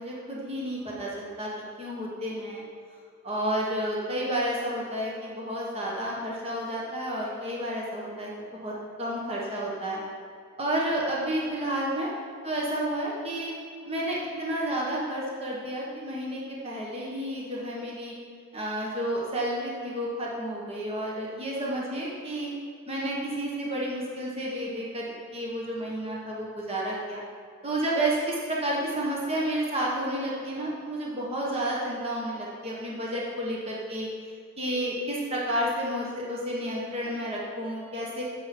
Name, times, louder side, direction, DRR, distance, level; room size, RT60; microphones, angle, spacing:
voice 1, 0.0-1.5 1.8-2.6 3.2-10.0 10.6-12.1 12.4-13.5 13.8-18.1 18.5-22.5 22.9-27.2 27.6-34.1 34.6-38.2, right 1 dB, 30° right, -4 dB, 1.3 m, -31 dB
9.4 x 7.6 x 4.4 m, 2.3 s
head